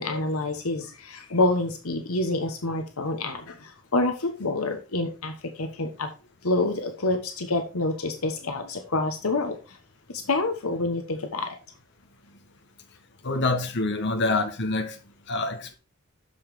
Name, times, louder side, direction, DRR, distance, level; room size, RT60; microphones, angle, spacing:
voice 1, 0.0-6.1 6.4-9.8 10.1-11.5 13.9-14.2, left 2 dB, 75° left, 1.2 m, -27 dB
voice 2, 13.2-14.9 15.3-15.7, left 2 dB, 55° left, 1.4 m, -26 dB
7.3 x 5.6 x 4.8 m
head